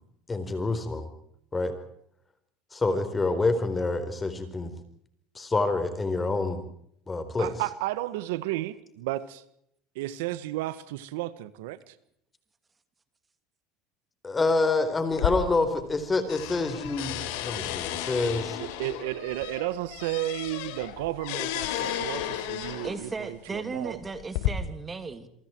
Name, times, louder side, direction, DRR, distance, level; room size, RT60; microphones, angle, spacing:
voice 1, 0.3-1.1 1.5-1.7 2.7-4.7 5.3-6.6 7.1-7.5 14.2-18.6, left 3 dB, 15° left, 9 dB, 4.5 m, -27 dB
voice 2, 7.4-9.4 9.9-12.0 18.6-24.0, right 16 dB, 85° right, 15 dB, 1.6 m, -33 dB
sound 1, 15.1-16.0 16.3-23.1 23.9-24.5, left 11 dB, 80° left, 4.0 m, -33 dB
voice 3, 22.8-25.3, right 4 dB, 20° right, 10 dB, 2.8 m, -36 dB
28.0 x 23.5 x 4.7 m, 0.73 s
supercardioid pair, 120°, 0 cm